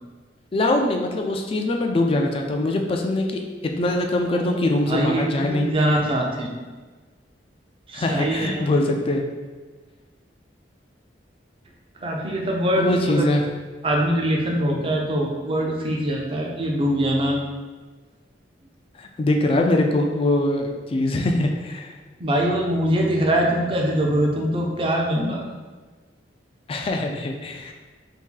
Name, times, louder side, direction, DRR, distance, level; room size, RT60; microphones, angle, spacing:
voice 1, 0.5-5.7 7.9-9.2 12.8-13.5 19.0-21.9 26.7-27.7, left 1 dB, 30° left, 3 dB, 0.3 m, -23 dB
voice 2, 4.9-6.5 7.9-8.7 12.0-13.3 13.8-17.4 22.2-25.6, equal, 30° right, 0 dB, 0.5 m, -23 dB
2.8 x 2.6 x 3.7 m, 1.4 s
head